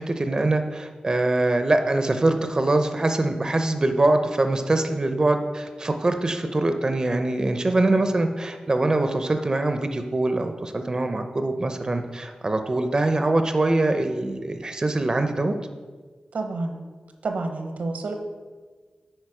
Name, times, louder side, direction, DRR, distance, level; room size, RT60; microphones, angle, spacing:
voice 1, 0.0-15.5, right 2 dB, 30° right, 7 dB, 0.5 m, -23 dB
voice 2, 16.3-16.8 17.2-18.1, right 3 dB, 80° right, 6 dB, 0.8 m, -29 dB
9.0 x 4.6 x 4.8 m, 1.4 s
wide cardioid pair, 105°, 2 cm